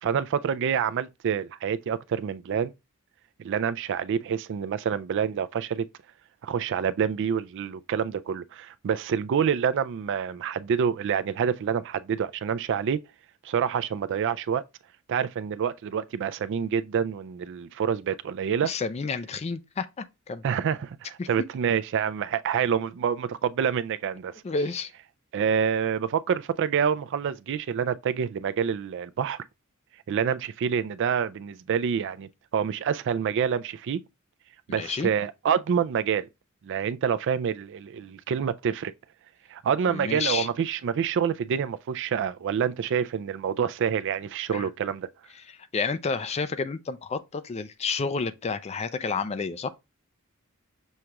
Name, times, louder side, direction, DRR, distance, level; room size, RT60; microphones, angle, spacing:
voice 1, 0.0-2.7 3.4-5.9 6.4-13.0 13.4-14.6 15.1-18.7 20.4-24.3 25.3-29.4 30.1-34.0 34.7-36.3 36.6-38.9 39.5-45.1, right 7 dB, 55° right, 0.3 m, -27 dB
voice 2, 18.6-20.4 21.2-21.3 24.4-24.9 34.7-35.1 39.9-40.5 44.5-44.7 45.7-49.7, left 4 dB, 30° left, 0.4 m, -30 dB
6.3 x 2.3 x 2.8 m
head